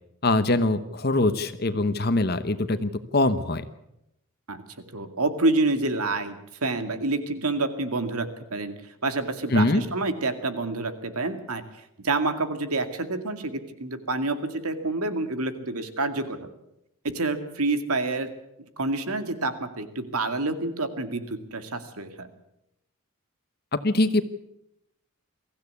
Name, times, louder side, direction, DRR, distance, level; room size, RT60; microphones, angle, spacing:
voice 1, 0.2-3.6 9.5-9.8 23.7-24.2, left 2 dB, 45° left, 11 dB, 1.0 m, -23 dB
voice 2, 4.9-8.7 9.0-11.6 12.0-16.4 17.0-18.3 18.8-22.3, right 2 dB, 90° right, 8 dB, 2.2 m, -28 dB
23.5 x 15.0 x 8.4 m, 0.84 s
head